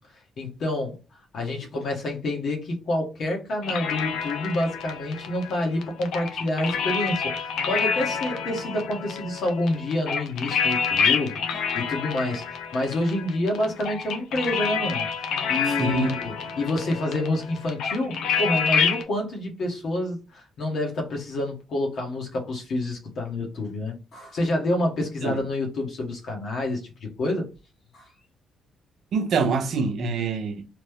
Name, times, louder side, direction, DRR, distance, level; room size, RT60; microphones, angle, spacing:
voice 1, 0.4-1.0 1.3-15.0 15.5-27.5 27.9-28.1, left 1 dB, 65° left, 1.2 m, -28 dB
sound 1, 3.6-19.0, left 6 dB, 80° left, 0.6 m, -28 dB
voice 2, 15.8-16.2 25.2-25.4 29.1-30.7, right 4 dB, 65° right, 0.6 m, -25 dB
3.1 x 2.1 x 3.4 m
cardioid pair, 90°, 0 cm